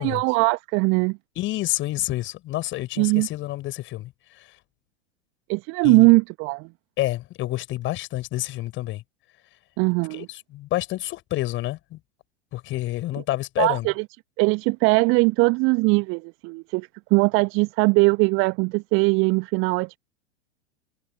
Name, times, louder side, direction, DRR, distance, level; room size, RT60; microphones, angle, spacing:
voice 1, 0.0-1.2 3.0-3.3 5.5-6.7 9.8-10.3 13.6-14.0 14.4-20.0, right 29 dB, 35° right, 1.6 m, -20 dB
voice 2, 1.4-4.5 5.8-6.1 7.0-9.0 10.1-12.0 12.5-13.9, left 16 dB, 35° left, 7.3 m, -29 dB
figure-of-eight pair, 90°, 35 cm